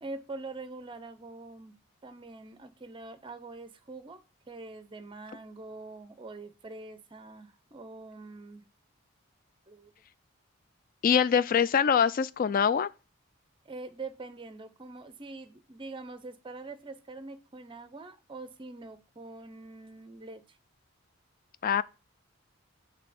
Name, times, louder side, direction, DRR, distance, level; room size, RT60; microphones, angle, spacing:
voice 1, 0.0-1.7 2.0-4.2 4.5-8.6 9.7-9.9 13.7-20.6, right 3 dB, 25° right, 0.6 m, -44 dB
voice 2, 11.0-12.9 21.6-21.8, left 7 dB, 40° left, 0.3 m, -24 dB
8.1 x 3.3 x 5.0 m
head